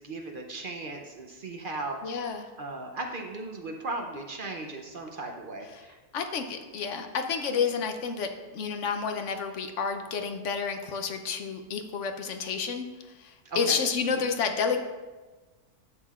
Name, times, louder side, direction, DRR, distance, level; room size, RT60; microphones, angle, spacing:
voice 1, 0.0-6.0 13.4-13.8 14.1-14.3, right 2 dB, 50° right, 3 dB, 0.8 m, -37 dB
voice 2, 2.0-2.5 5.7-5.8 6.1-12.9 13.1-14.8, left 5 dB, 70° left, 6 dB, 1.0 m, -30 dB
11.0 x 7.4 x 2.4 m, 1.3 s
omnidirectional pair, 1.3 m